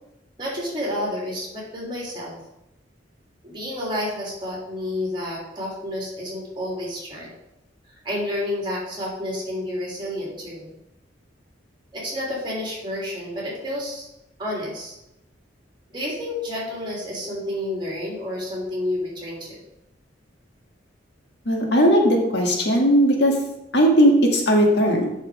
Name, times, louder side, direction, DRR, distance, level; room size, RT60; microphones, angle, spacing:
voice 1, 0.4-2.4 3.4-7.3 8.0-10.7 11.9-14.1 14.4-14.9 15.9-19.6, left 1 dB, 25° right, -4 dB, 3.1 m, -30 dB
voice 2, 21.5-23.3 23.7-25.1, equal, 65° left, 0 dB, 1.8 m, -17 dB
8.3 x 6.3 x 4.9 m, 0.88 s
head